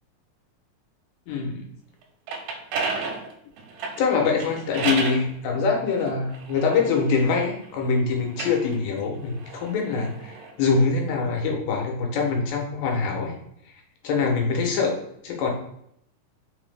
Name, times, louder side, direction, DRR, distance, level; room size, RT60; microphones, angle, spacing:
voice 1, 1.3-1.6 4.0-13.3 14.0-15.0 15.2-15.5, left 4 dB, 90° left, 0 dB, 2.5 m, -24 dB
sound 1, 2.0-5.3 6.0-7.7 8.2-10.5, right 4 dB, 85° right, 2.2 m, -33 dB
5.5 x 2.0 x 3.2 m, 0.73 s
omnidirectional pair, 3.8 m